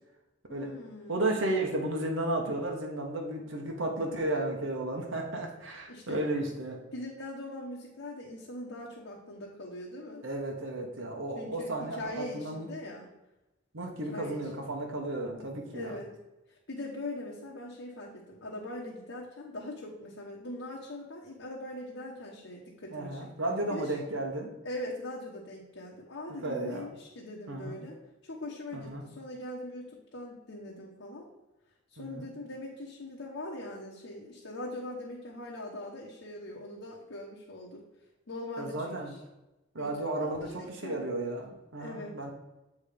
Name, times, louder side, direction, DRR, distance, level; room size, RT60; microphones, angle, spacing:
voice 1, 0.5-1.4 5.9-6.2 6.9-10.2 11.3-13.1 14.1-14.4 15.7-16.1 16.7-23.3 23.7-23.9 24.6-28.0 28.2-29.9 30.1-31.3 31.9-37.8 38.3-38.8 39.0-39.2 39.8-39.9 40.2-40.3 40.6-41.0 41.8-42.2, left 1 dB, 80° left, -4 dB, 1.1 m, -41 dB
voice 2, 1.1-6.8 10.2-12.7 13.7-16.0 22.9-24.5 26.4-26.9 27.5-27.8 28.7-29.1 32.0-32.3 38.6-39.1 39.7-42.3, right 1 dB, 85° right, 1 dB, 1.1 m, -33 dB
7.4 x 3.6 x 5.0 m, 0.99 s
head